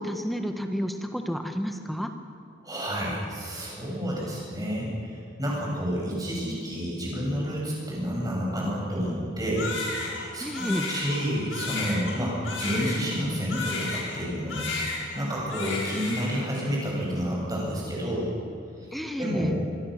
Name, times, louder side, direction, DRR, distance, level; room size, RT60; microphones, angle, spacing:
voice 1, 0.0-2.1 10.4-10.9 18.9-19.5, equal, ahead, 6 dB, 1.4 m, -30 dB
voice 2, 2.6-18.3 19.2-19.7, equal, 20° right, -4 dB, 7.7 m, -30 dB
Crying sobbing, 9.6-14.2 14.5-15.2 15.5-16.4, left 3 dB, 85° left, 6.4 m, -33 dB
25.0 x 22.0 x 6.7 m, 2.5 s
head